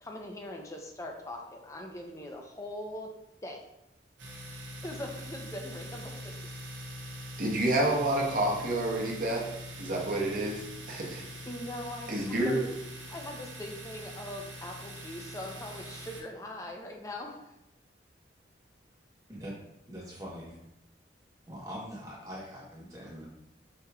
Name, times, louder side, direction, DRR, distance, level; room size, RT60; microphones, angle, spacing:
voice 1, 0.0-3.1 3.4-3.6 4.5-6.3 7.1-7.2 11.4-12.6 13.1-17.5, left 1 dB, 15° left, 2 dB, 0.4 m, -41 dB
Domestic sounds home sounds, 4.2-16.2, equal, 85° right, 0.9 m, -43 dB
voice 2, 7.4-9.4 9.8-11.3 12.1-12.6, right 1 dB, 45° right, -2 dB, 0.8 m, -29 dB
voice 3, 19.9-20.5 21.5-23.2, equal, 20° right, -5 dB, 0.9 m, -42 dB
4.8 x 2.9 x 2.3 m, 0.86 s
head